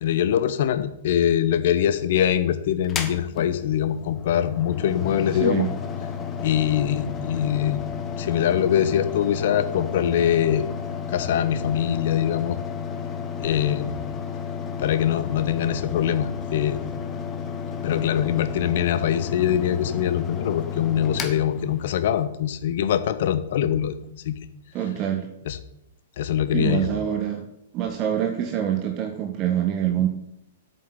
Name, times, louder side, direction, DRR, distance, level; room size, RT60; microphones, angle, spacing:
voice 1, 0.0-5.7 6.4-7.8 8.2-10.7 11.1-12.6 13.4-14.0 14.8-16.8 17.8-24.0 24.2-24.3 25.5-25.6 26.2-26.9, left 10 dB, 55° left, 12 dB, 1.2 m, -23 dB
Mechanical fan, 2.8-22.2, left 6 dB, 25° left, 1.8 m, -32 dB
voice 2, 5.4-5.7 24.7-25.3 26.5-27.4 27.7-30.1, right 10 dB, 35° right, 4 dB, 1.5 m, -25 dB
8.4 x 7.9 x 8.8 m, 0.77 s
figure-of-eight pair, 110°, 0 cm